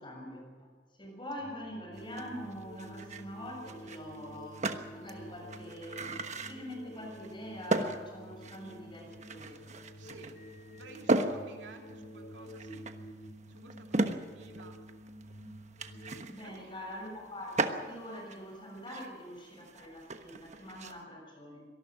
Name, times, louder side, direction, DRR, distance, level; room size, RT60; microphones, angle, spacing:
voice 1, 0.0-9.8 16.3-21.7, equal, 30° left, 1 dB, 7.1 m, -44 dB
sound 1, 1.4-16.2, equal, 55° left, 4.2 m, -49 dB
sound 2, 2.0-21.0, right 2 dB, 40° right, 1.2 m, -37 dB
voice 2, 10.0-10.4 10.7-14.8 16.4-16.8, right 2 dB, 85° right, 2 dB, 3.0 m, -54 dB
24.5 x 19.5 x 6.2 m, 1.4 s
head